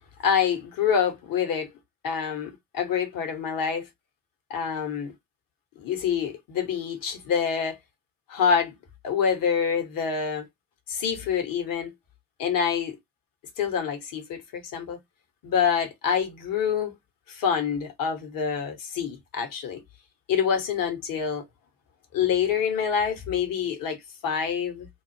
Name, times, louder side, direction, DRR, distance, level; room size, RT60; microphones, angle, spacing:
voice 1, 0.2-1.7 2.0-3.9 4.5-5.1 5.8-7.8 8.3-8.8 9.0-10.5 10.9-11.9 12.4-13.0 13.6-15.0 15.4-16.9 17.3-19.8 20.3-21.4 22.1-24.9, left 7 dB, 45° left, 1.0 m, -26 dB
2.4 x 2.0 x 3.0 m
figure-of-eight pair, 50°, 48 cm